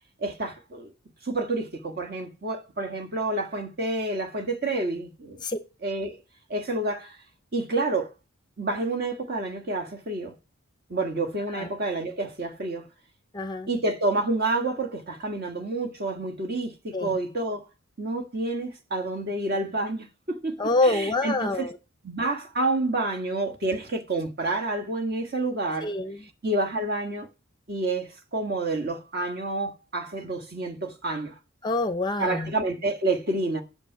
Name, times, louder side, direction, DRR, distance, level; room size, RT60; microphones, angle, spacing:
voice 1, 0.2-0.9 1.2-5.4 5.8-6.2 6.5-7.2 7.5-8.1 8.6-10.3 10.9-12.9 13.7-17.6 18.0-20.6 20.8-21.7 22.0-25.9 26.4-27.3 27.7-31.3 32.2-33.6, right 2 dB, 45° right, 1.4 m, -29 dB
voice 2, 13.3-13.7 16.9-17.2 20.6-21.8 25.8-26.2 31.6-32.5, left 2 dB, 20° left, 0.5 m, -26 dB
8.7 x 6.3 x 5.5 m
head